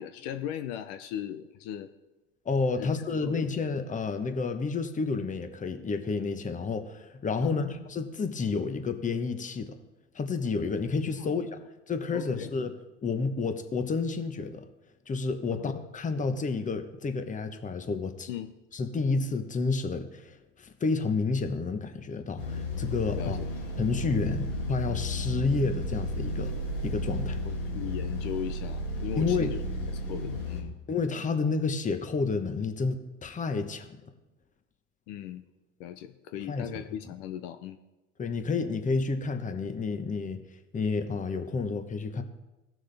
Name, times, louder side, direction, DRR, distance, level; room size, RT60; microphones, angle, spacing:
voice 1, 0.0-1.9 2.7-2.9 3.2-3.6 7.4-7.9 11.2-11.3 12.1-12.5 15.5-15.7 18.3-18.5 23.1-23.5 27.4-29.6 30.1-30.8 35.1-35.4 35.8-37.8, left 10 dB, 65° left, 9 dB, 0.8 m, -38 dB
voice 2, 2.4-9.8 10.1-11.5 11.9-12.7 13.0-14.6 15.1-18.3 18.7-23.4 23.8-26.5 26.8-27.4 29.2-29.6 30.9-34.0 36.5-36.8 38.2-40.4 40.7-42.2, left 4 dB, 20° left, 8 dB, 1.0 m, -30 dB
sound 1, 22.4-30.6, left 1 dB, 90° left, 1.9 m, -33 dB
16.5 x 6.3 x 3.4 m, 1.0 s
hypercardioid pair, 90°, 36 cm